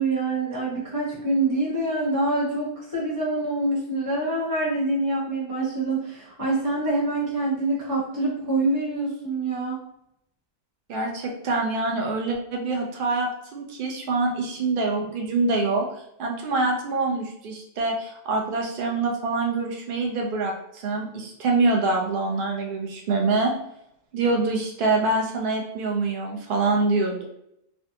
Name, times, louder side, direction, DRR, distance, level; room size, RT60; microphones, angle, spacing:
voice 1, 0.0-9.8, right 2 dB, 15° right, -8 dB, 0.9 m, -25 dB
voice 2, 10.9-15.9 16.2-23.5 24.1-27.2, right 3 dB, 90° right, 0 dB, 0.4 m, -25 dB
3.5 x 2.2 x 2.7 m, 0.76 s
omnidirectional pair, 1.6 m